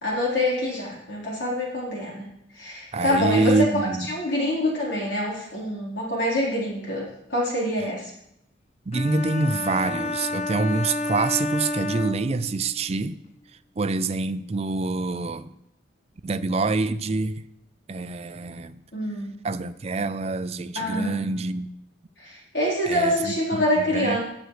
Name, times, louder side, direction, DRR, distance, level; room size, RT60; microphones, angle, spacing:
voice 1, 0.0-2.2 2.5-3.7 4.1-8.1 18.9-19.3 20.8-21.3 22.2-24.2, left 1 dB, 60° left, -5 dB, 4.0 m, -26 dB
voice 2, 2.9-4.1 8.9-13.2 13.8-15.5 16.2-17.4 17.9-18.8 19.4-21.7 22.9-24.2, right 3 dB, 35° right, 12 dB, 0.4 m, -26 dB
sound 1, 8.9-12.8, left 2 dB, 35° left, 0.6 m, -30 dB
15.5 x 8.1 x 3.3 m, 0.79 s
head